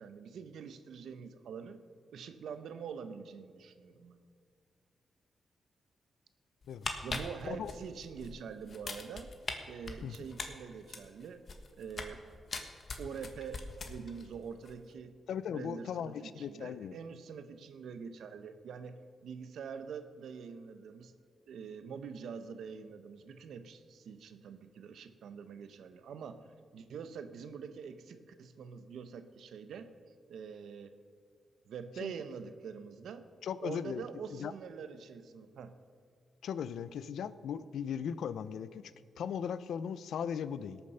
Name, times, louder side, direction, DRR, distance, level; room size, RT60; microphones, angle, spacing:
voice 1, 0.0-1.8 2.1-4.2 7.0-9.3 9.7-11.4 11.7-12.2 13.0-15.2 15.5-21.1 21.5-26.5 26.7-29.9 30.3-30.9 31.7-33.3 33.6-35.8, right 6 dB, 90° right, 11 dB, 0.8 m, -45 dB
sound 1, 6.6-8.3 8.7-9.5 9.9-12.2 12.5-14.3 14.5-14.7, left 4 dB, 45° left, 1.4 m, -40 dB
voice 2, 15.3-17.0 32.0-32.1 33.4-34.0 34.3-34.5 36.4-38.8 39.2-40.8, left 8 dB, 90° left, 15 dB, 0.5 m, -38 dB
18.0 x 7.0 x 6.7 m, 2.2 s
cardioid pair, 110°, 0 cm